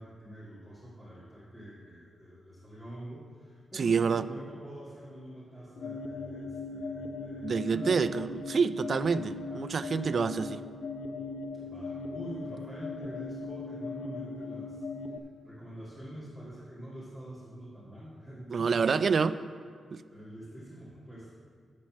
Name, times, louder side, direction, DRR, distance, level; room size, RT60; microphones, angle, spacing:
voice 1, 0.0-8.2 9.4-9.8 11.5-14.8 15.4-19.0 20.1-21.3, right 1 dB, ahead, -13 dB, 2.4 m, -46 dB
voice 2, 3.7-4.3 7.4-10.6 18.5-19.3 19.9-20.0, right 5 dB, 45° right, 13 dB, 0.3 m, -27 dB
sound 1, 5.8-15.2, left 3 dB, 85° left, 0.6 m, -39 dB
12.0 x 4.4 x 7.4 m, 2.1 s
wide cardioid pair, 165°, 0 cm